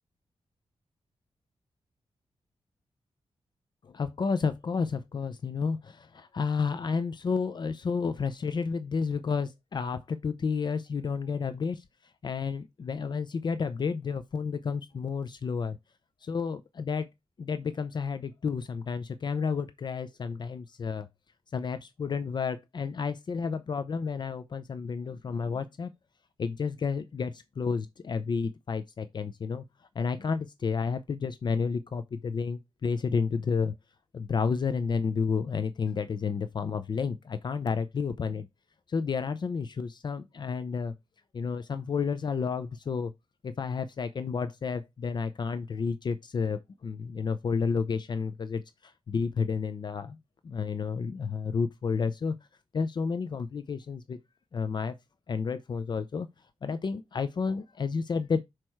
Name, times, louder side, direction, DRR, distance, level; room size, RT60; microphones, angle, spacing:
voice 1, 3.8-11.8 12.2-15.8 16.2-17.1 17.4-21.1 21.5-25.9 26.4-29.6 29.9-33.7 34.1-38.5 38.9-40.9 41.3-43.1 43.4-50.2 50.4-52.3 52.7-54.2 54.5-54.9 55.3-56.3 56.6-58.4, left 5 dB, 45° left, 0.6 m, -31 dB
6.4 x 4.4 x 4.5 m
wide cardioid pair, 150°, 10 cm